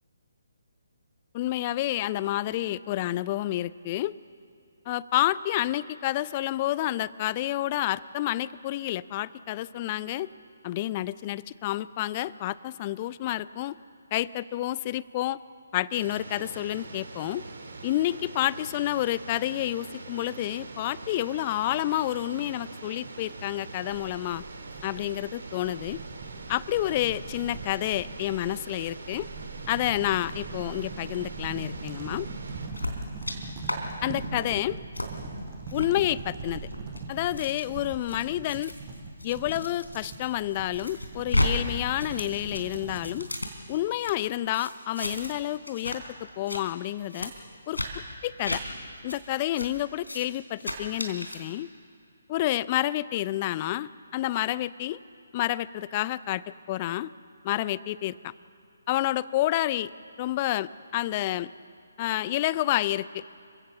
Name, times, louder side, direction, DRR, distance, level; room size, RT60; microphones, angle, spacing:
voice 1, 1.3-4.1 4.9-10.3 10.6-13.8 14.1-15.4 15.7-17.4 17.8-24.4 24.8-26.0 26.5-29.3 29.7-32.3 34.0-34.8 35.7-36.7 37.1-38.7 39.2-43.3 43.7-46.0 46.4-47.3 47.7-47.8 48.2-48.6 49.0-51.7 52.3-55.0 55.3-56.4 56.7-57.1 57.4-58.3 58.9-59.9 60.2-61.5 62.0-63.3, left 14 dB, 30° left, 19 dB, 0.5 m, -29 dB
sound 1, 15.9-32.7, right 3 dB, 60° right, 2.8 m, -43 dB
sound 2, 23.9-43.2, right 4 dB, 25° right, 5.6 m, -41 dB
sound 3, 32.8-33.4 33.6-33.8 34.2-34.4 34.9-35.1 35.7-35.9 36.6-40.1 40.5-41.5 41.8-44.1 44.5-45.4 45.6-46.0 46.3-46.6 47.1-47.3 47.7-47.9 48.4-48.6 49.1-49.2 49.5-49.7 50.0-50.3 50.6-51.4, left 1 dB, 80° left, 3.6 m, -33 dB
28.5 x 16.5 x 7.3 m, 2.3 s
figure-of-eight pair, 140°, 0 cm